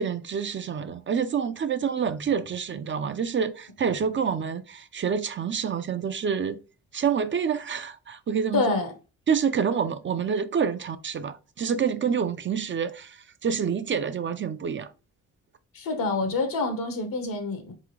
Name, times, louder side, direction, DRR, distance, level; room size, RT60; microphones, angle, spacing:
voice 1, 0.0-6.6 6.9-8.8 9.3-14.9, right 7 dB, 35° right, 0.4 m, -27 dB
voice 2, 8.5-8.9 15.7-17.7, left 3 dB, 80° left, 1.3 m, -27 dB
3.9 x 3.6 x 3.1 m
cardioid pair, 90°, 33 cm